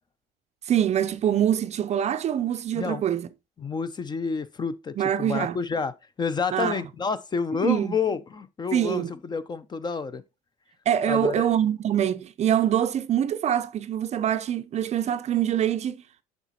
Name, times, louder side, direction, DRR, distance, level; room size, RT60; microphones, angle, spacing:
voice 1, 0.7-3.3 5.0-5.6 6.5-6.8 7.6-7.9 8.7-9.1 10.9-16.0, right 10 dB, 40° right, 0.5 m, -24 dB
voice 2, 3.6-10.2 11.1-11.5, left 5 dB, 25° left, 0.6 m, -29 dB
7.0 x 5.1 x 2.8 m
supercardioid pair, 90°, 17 cm